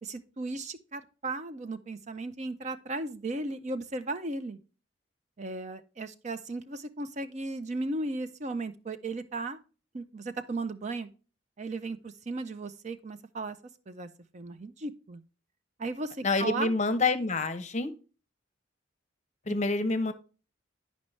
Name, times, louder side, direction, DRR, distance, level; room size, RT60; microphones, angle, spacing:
voice 1, 0.0-4.6 5.4-9.6 9.9-11.1 11.6-13.6 13.9-14.1 14.3-15.2 15.8-16.7, right 2 dB, 40° right, 0.5 m, -36 dB
voice 2, 16.2-17.9 19.5-20.1, left 3 dB, 40° left, 0.7 m, -27 dB
10.0 x 5.2 x 3.1 m
head